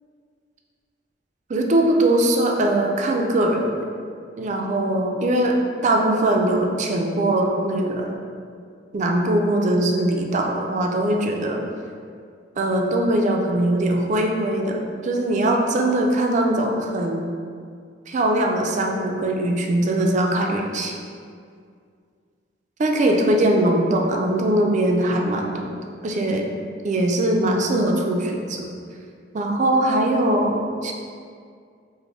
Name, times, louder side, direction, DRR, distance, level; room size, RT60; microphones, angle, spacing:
voice 1, 1.5-3.8 4.4-5.6 5.8-8.2 8.9-11.6 12.6-17.2 18.1-21.0 22.8-25.7 26.0-26.5 26.8-28.7 29.3-30.9, right 1 dB, 40° right, 2 dB, 0.4 m, -21 dB
5.1 x 2.1 x 3.2 m, 2.2 s
head